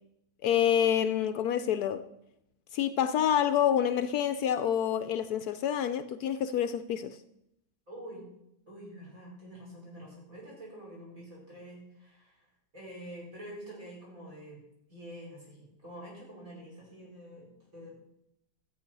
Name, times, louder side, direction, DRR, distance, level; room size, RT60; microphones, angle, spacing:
voice 1, 0.4-2.0 2.7-7.2, left 9 dB, 70° left, 1.0 m, -27 dB
voice 2, 7.9-8.2 8.7-12.5 12.7-14.6 14.9-17.9, equal, 50° right, 5.9 m, -47 dB
13.5 x 8.4 x 5.3 m
omnidirectional pair, 1.8 m